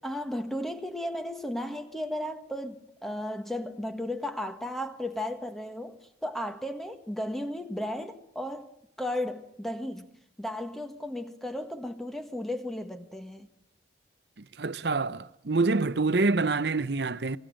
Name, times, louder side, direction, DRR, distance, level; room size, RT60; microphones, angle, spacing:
voice 1, 0.0-8.7 9.0-10.1 10.4-13.5, left 1 dB, ahead, 1.5 m, -34 dB
voice 2, 14.6-17.4, right 3 dB, 60° right, 0.8 m, -26 dB
26.5 x 21.5 x 6.5 m
head